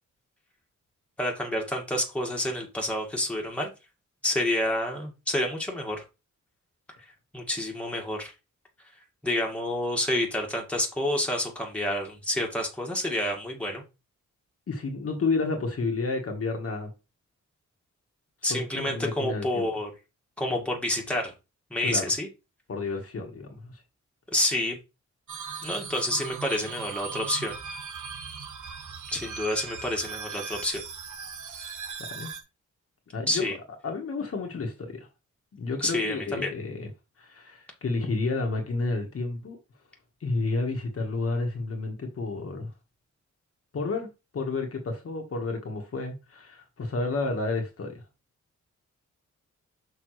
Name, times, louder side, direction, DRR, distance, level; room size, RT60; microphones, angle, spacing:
voice 1, 1.2-3.7 4.2-6.0 7.3-8.3 9.2-13.8 18.4-19.9 20.4-21.3 21.7-22.3 24.3-24.8 25.6-27.6 29.1-30.8 33.3-33.6 35.8-36.5, left 1 dB, 5° left, 1.9 m, -28 dB
voice 2, 14.7-16.9 18.4-19.7 21.9-22.1 22.7-23.8 31.6-31.8 32.1-32.3 33.1-33.5 33.8-35.1 35.5-36.9 37.2-39.6 40.2-42.7 43.7-44.1 44.3-48.0, left 3 dB, 50° left, 1.4 m, -31 dB
sound 1, 25.3-32.4, right 6 dB, 80° right, 1.4 m, -38 dB
6.4 x 5.3 x 3.2 m
wide cardioid pair, 135°, 30 cm